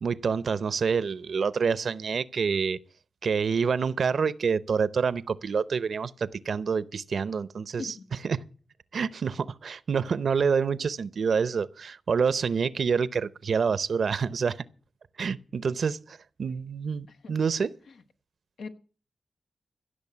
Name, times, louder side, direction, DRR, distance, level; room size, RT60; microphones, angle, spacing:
voice 1, 0.0-2.8 3.2-7.9 8.2-8.4 8.9-14.6 15.2-17.7, right 6 dB, 70° right, 0.7 m, -27 dB
voice 2, 7.8-8.0 16.5-16.6 17.1-17.3 17.9-18.0 18.6-18.7, left 4 dB, 90° left, 1.4 m, -41 dB
16.5 x 6.4 x 8.5 m
cardioid pair, 65°, 0 cm